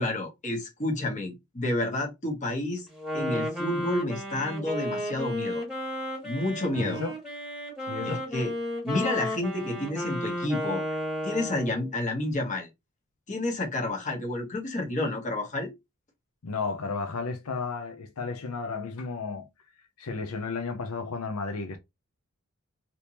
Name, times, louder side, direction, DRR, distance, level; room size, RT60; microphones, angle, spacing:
voice 1, 0.0-2.9 3.1-5.6 6.2-7.0 8.0-8.5 8.8-10.8 11.2-12.7 13.3-15.7, left 2 dB, 35° left, 1.2 m, -30 dB
Wind instrument woodwind instrument, 2.9-11.9, equal, 5° right, 1.6 m, -33 dB
voice 2, 6.8-7.1 7.9-8.2 16.4-19.5 20.0-21.8, left 4 dB, 85° left, 0.6 m, -33 dB
3.4 x 2.9 x 2.9 m
head